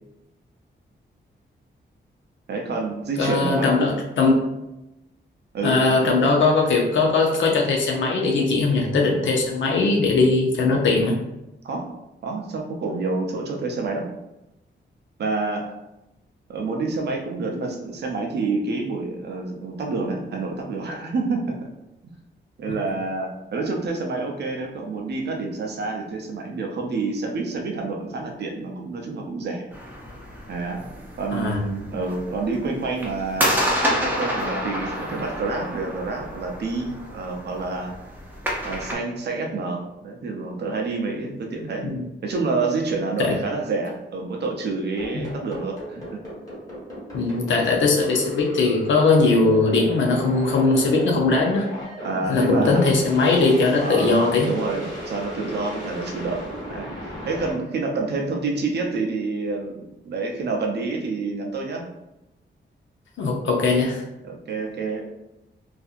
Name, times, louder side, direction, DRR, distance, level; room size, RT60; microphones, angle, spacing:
voice 1, 2.5-3.7 5.5-6.2 11.6-11.9 12.2-14.1 15.2-15.8 16.5-21.7 22.0-22.1 22.6-29.6 30.5-30.9 31.2-33.6 33.8-37.9 38.6-41.9 42.2-46.2 52.0-52.9 53.8-56.9 57.3-61.9 64.2-65.0, right 3 dB, 60° right, 1 dB, 0.5 m, -28 dB
voice 2, 3.2-4.4 5.6-11.2 31.3-31.6 41.8-42.0 43.2-43.4 45.1-45.3 47.1-51.7 52.3-54.5 63.2-64.0, left 3 dB, 80° left, 0 dB, 0.6 m, -20 dB
sound 1, 29.7-38.9, equal, 10° right, 0.5 m, -29 dB
sound 2, 45.0-57.5, equal, 20° left, 1.0 m, -35 dB
2.7 x 2.5 x 2.4 m, 0.93 s
wide cardioid pair, 180°, 19 cm